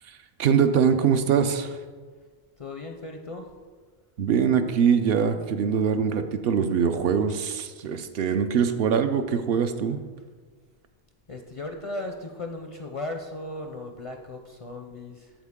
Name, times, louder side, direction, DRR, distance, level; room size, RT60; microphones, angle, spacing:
voice 1, 0.1-1.8 4.2-10.0, right 7 dB, 70° right, 8 dB, 0.8 m, -23 dB
voice 2, 2.6-3.5 11.3-15.3, left 2 dB, 45° left, 3 dB, 0.5 m, -36 dB
13.0 x 4.5 x 3.6 m, 1.5 s
omnidirectional pair, 1.1 m